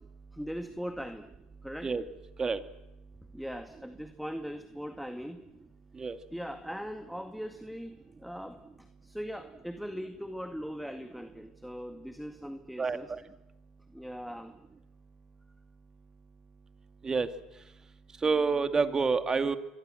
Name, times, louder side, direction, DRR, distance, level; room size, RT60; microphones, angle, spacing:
voice 1, 0.3-1.3 1.6-1.9 3.3-5.4 6.3-13.1 13.9-14.5, equal, ahead, 7 dB, 2.1 m, -40 dB
voice 2, 12.8-13.2 17.0-17.3 18.2-19.6, right 4 dB, 25° right, 9 dB, 2.3 m, -28 dB
29.0 x 24.0 x 7.8 m, 0.93 s
hypercardioid pair, 80°, 2 cm